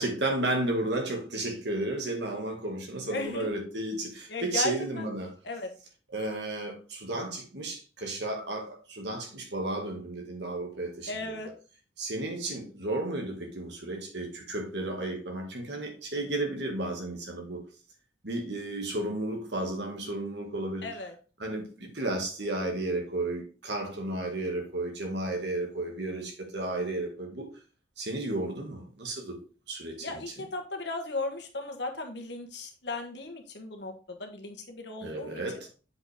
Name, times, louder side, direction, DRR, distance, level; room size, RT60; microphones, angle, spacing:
voice 1, 0.0-5.3 6.1-11.4 12.0-17.6 18.2-20.9 21.4-27.5 28.0-29.4 29.7-30.3 35.0-35.7, right 2 dB, 65° right, 2.0 m, -33 dB
voice 2, 3.1-3.5 4.3-5.1 5.4-5.7 11.1-11.5 20.8-21.1 30.0-35.4, left 2 dB, 65° left, 1.5 m, -36 dB
7.7 x 5.2 x 3.5 m
head